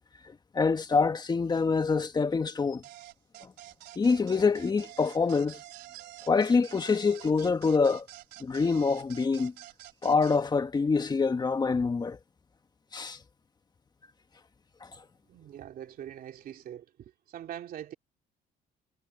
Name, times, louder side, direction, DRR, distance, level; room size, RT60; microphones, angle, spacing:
voice 1, 0.3-2.8 3.4-3.5 3.9-5.6 6.3-8.1 8.4-9.5 10.0-12.2 12.9-13.2 14.8-14.9, left 4 dB, 25° left, 1.5 m, -26 dB
sound 1, 2.8-10.4, right 15 dB, 85° right, 4.5 m, -48 dB
voice 2, 15.3-17.9, right 10 dB, 60° right, 2.8 m, -43 dB
cardioid pair, 110°, 17 cm